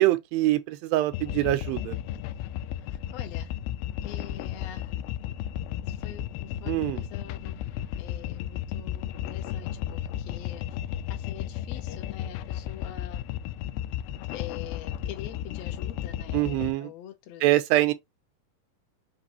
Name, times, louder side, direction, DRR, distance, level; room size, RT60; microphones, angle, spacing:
voice 1, 0.0-2.0 6.7-7.0 16.3-16.9 17.4-17.9, right 16 dB, 90° right, 2.4 m, -24 dB
sound 1, 1.1-16.7, left 11 dB, 85° left, 2.4 m, -34 dB
voice 2, 2.8-3.6 4.0-5.0 5.8-7.6 8.0-10.8 11.1-13.2 14.3-17.4, left 11 dB, 70° left, 1.7 m, -45 dB
6.1 x 2.5 x 2.8 m
omnidirectional pair, 4.1 m